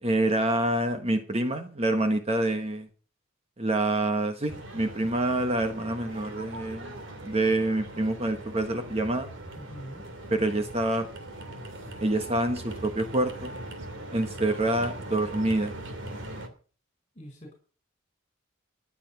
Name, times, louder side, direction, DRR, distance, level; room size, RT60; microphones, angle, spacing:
voice 1, 0.0-2.9 3.6-6.9 7.2-9.3 10.3-11.1 12.0-13.6 14.1-15.8, right 1 dB, 30° right, 7 dB, 1.3 m, -27 dB
sound 1, 4.5-16.5, right 1 dB, 60° right, 2.8 m, -40 dB
voice 2, 9.6-10.1 17.1-17.6, equal, 25° left, 3 dB, 4.9 m, -44 dB
14.0 x 9.9 x 5.5 m, 0.39 s
head